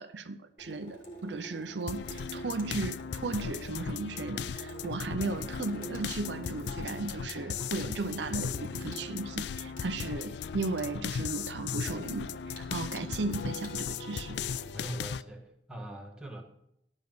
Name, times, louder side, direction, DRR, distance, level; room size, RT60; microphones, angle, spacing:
voice 1, 0.0-14.4, right 3 dB, 80° right, 0.7 m, -36 dB
Water tap faucet / Sink (filling or washing), 0.6-14.8, right 2 dB, 50° left, 2.3 m, -48 dB
sound 1, 1.9-15.2, left 7 dB, 70° left, 0.3 m, -37 dB
voice 2, 14.7-16.4, right 1 dB, 5° right, 1.5 m, -41 dB
11.5 x 5.4 x 7.8 m
head